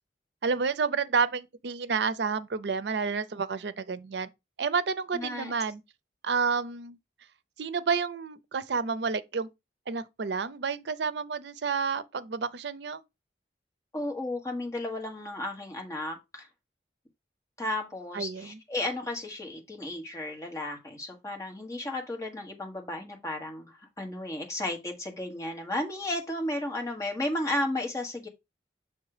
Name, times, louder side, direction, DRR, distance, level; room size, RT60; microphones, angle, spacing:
voice 1, 0.4-4.3 4.6-5.8 6.2-7.0 7.6-9.5 9.9-13.0 18.1-18.6, right 5 dB, 75° right, 0.5 m, -30 dB
voice 2, 5.1-5.5 13.9-16.5 17.6-28.3, left 1 dB, 20° left, 1.4 m, -34 dB
7.3 x 3.2 x 4.9 m
head